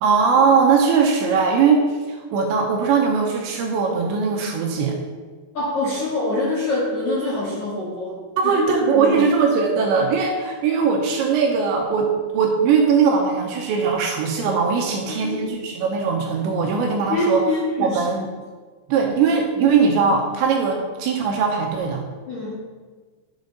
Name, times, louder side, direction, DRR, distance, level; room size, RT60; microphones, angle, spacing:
voice 1, 0.0-5.0 8.4-17.4 17.8-18.3 18.9-22.0, right 5 dB, 75° right, 0 dB, 2.9 m, -20 dB
voice 2, 5.5-9.3 15.1-15.5 17.1-18.0 22.3-22.5, left 1 dB, 65° left, -8 dB, 1.8 m, -25 dB
10.5 x 6.9 x 3.9 m, 1.4 s
omnidirectional pair, 5.8 m